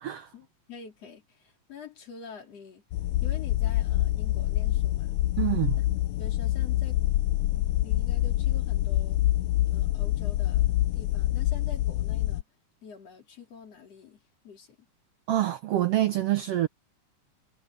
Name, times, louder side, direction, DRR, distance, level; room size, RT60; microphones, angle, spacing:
voice 1, 0.3-2.8 3.2-5.1 5.8-7.0 7.5-9.2 9.7-12.4 12.8-14.9, left 6 dB, 50° left, 4.1 m, -47 dB
sound 1, 2.9-12.4, left 15 dB, 85° left, 1.5 m, -26 dB
voice 2, 5.4-5.8 15.3-16.7, right 14 dB, 90° right, 1.3 m, -26 dB
omnidirectional pair, 3.7 m